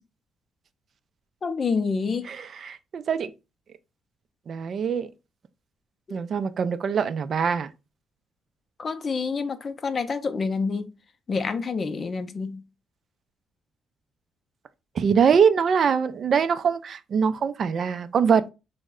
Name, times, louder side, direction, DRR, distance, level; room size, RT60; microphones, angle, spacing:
voice 1, 1.4-2.3 6.1-6.2 8.8-10.9 11.3-12.6, left 4 dB, 40° left, 0.4 m, -28 dB
voice 2, 2.2-3.3 4.5-5.1 6.1-7.7 15.0-18.4, right 6 dB, 55° right, 0.3 m, -23 dB
3.1 x 2.1 x 3.5 m
cardioid pair, 90°, 0 cm